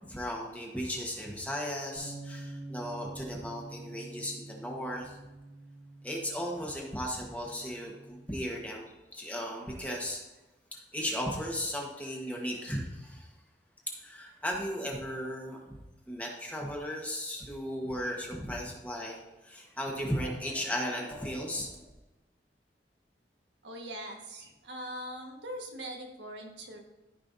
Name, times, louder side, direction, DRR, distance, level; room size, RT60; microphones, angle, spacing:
voice 1, 0.0-5.1 6.0-10.2 10.7-13.3 14.0-19.2 19.4-21.9, equal, 10° left, -1 dB, 1.4 m, -36 dB
sound 1, 2.0-8.2, right 2 dB, 65° left, 3.1 m, -47 dB
voice 2, 23.6-26.8, equal, 85° right, 1 dB, 1.6 m, -41 dB
14.0 x 5.5 x 2.7 m, 1.1 s
head